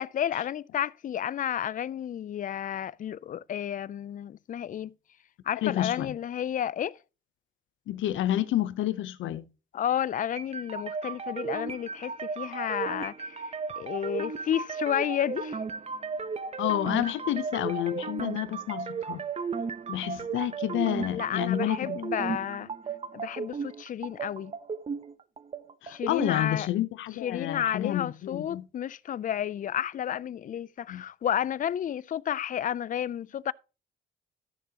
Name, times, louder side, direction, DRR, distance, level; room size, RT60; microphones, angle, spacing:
voice 1, 0.0-4.9 5.5-7.0 9.7-15.6 21.1-22.7 23.1-24.5 25.9-26.7 27.2-33.5, left 10 dB, 45° left, 0.4 m, -31 dB
voice 2, 5.6-6.1 7.9-9.5 16.6-19.2 19.9-22.0 25.8-28.6 30.9-31.0, left 13 dB, 80° left, 0.7 m, -29 dB
sound 1, 10.4-26.3, right 5 dB, 30° right, 0.8 m, -35 dB
14.0 x 6.7 x 2.8 m
cardioid pair, 90°, 20 cm